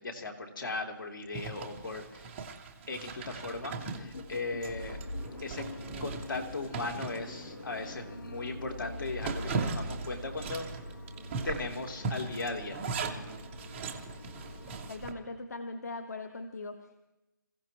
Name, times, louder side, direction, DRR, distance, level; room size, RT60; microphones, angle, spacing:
voice 1, 0.0-2.3 2.9-5.0 5.4-5.7 6.0-10.6 11.4-12.8, left 3 dB, 70° left, 3 dB, 3.3 m, -37 dB
sound 1, 1.2-1.3 1.8-2.2 2.5-2.6 2.9-3.1 3.3-14.9, left 1 dB, 85° left, 2.7 m, -44 dB
Zipper (clothing), 1.3-8.0 8.4-8.5 8.8-15.1, right 4 dB, 5° right, 0.4 m, -39 dB
voice 2, 14.9-17.1, left 3 dB, 50° left, 8 dB, 1.2 m, -40 dB
27.0 x 16.0 x 3.0 m, 1.0 s
hypercardioid pair, 175°, 11 cm